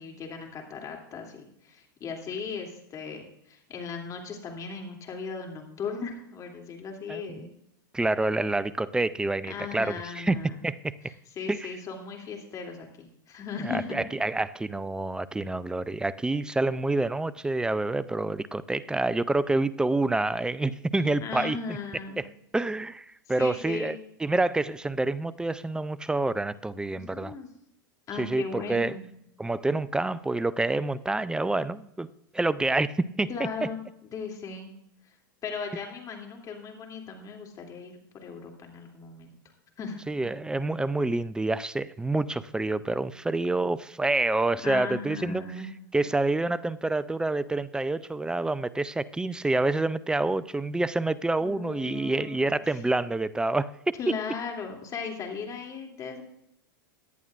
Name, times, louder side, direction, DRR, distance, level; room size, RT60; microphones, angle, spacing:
voice 1, 0.0-7.5 9.5-10.6 11.3-12.9 13.3-14.0 21.2-22.2 23.4-24.0 26.9-27.5 28.1-29.0 33.3-34.7 35.4-39.3 39.8-40.0 44.6-45.7 51.4-52.4 54.0-56.2, left 5 dB, 30° left, 1 dB, 2.8 m, -37 dB
voice 2, 7.1-7.5 7.9-10.9 11.5-11.7 13.6-21.8 22.2-22.3 22.5-27.3 28.2-29.0 29.4-32.1 32.3-33.5 40.1-45.4 45.9-54.0, right 2 dB, 5° right, 17 dB, 0.4 m, -27 dB
17.5 x 10.5 x 2.5 m, 0.77 s
hypercardioid pair, 105°, 11 cm